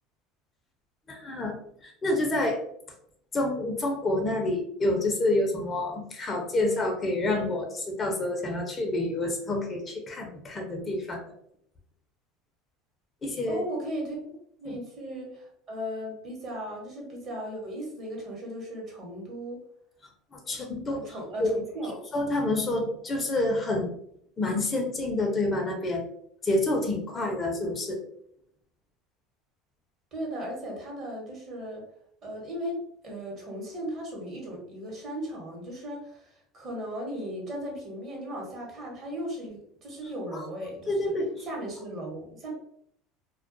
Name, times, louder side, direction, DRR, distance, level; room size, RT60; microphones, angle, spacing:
voice 1, 1.1-1.6 1.8-2.6 3.3-11.2 13.2-13.6 14.7-14.8 20.3-21.0 21.4-21.5 22.1-23.9 24.4-26.0 26.4-28.0 40.3-40.4 40.9-41.5, left 2 dB, 30° left, 2 dB, 0.5 m, -28 dB
voice 2, 13.5-14.2 14.6-19.6 20.9-22.0 30.1-31.8 32.2-41.1 41.4-42.5, equal, 45° right, -1 dB, 1.0 m, -37 dB
2.2 x 2.2 x 2.5 m, 0.68 s
supercardioid pair, 110°, 0 cm